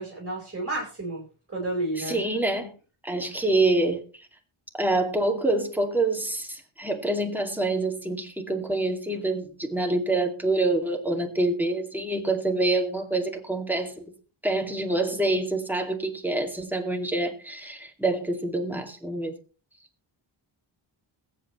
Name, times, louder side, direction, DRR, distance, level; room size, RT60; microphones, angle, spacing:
voice 1, 0.0-2.2 3.3-3.4, right 2 dB, 30° right, 4.3 m, -32 dB
voice 2, 2.0-2.7 3.0-4.3 4.7-14.1 14.4-19.3, right 2 dB, 5° right, 2.3 m, -26 dB
21.5 x 8.2 x 3.1 m
wide cardioid pair, 100°, 49 cm